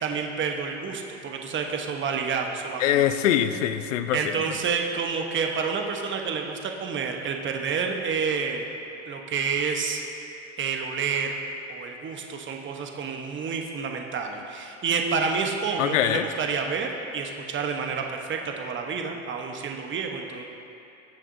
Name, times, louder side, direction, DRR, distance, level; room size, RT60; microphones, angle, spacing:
voice 1, 0.0-3.0 4.1-8.7 9.1-10.0 10.6-11.4 11.7-20.4, right 5 dB, 30° right, 2 dB, 1.1 m, -29 dB
voice 2, 2.8-4.3 15.8-16.2, left 11 dB, 85° left, 10 dB, 0.6 m, -23 dB
18.0 x 7.3 x 2.7 m, 2.8 s
hypercardioid pair, 95°, 37 cm